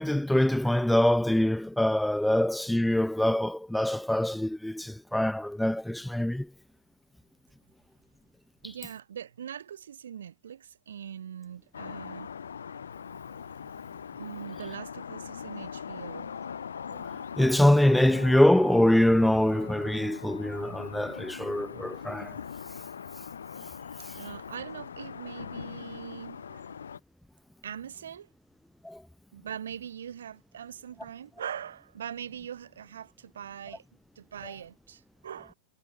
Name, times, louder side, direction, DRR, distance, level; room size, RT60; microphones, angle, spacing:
voice 1, 0.0-6.5 17.4-22.3 28.8-29.0, left 1 dB, ahead, 0.4 m, -24 dB
voice 2, 8.6-12.3 14.2-16.3 24.2-26.7 27.6-28.3 29.3-33.8 34.2-35.5, right 9 dB, 65° right, 3.5 m, -42 dB
sound 1, 11.7-27.0, left 7 dB, 70° left, 2.3 m, -41 dB
figure-of-eight pair, 90°, 0 cm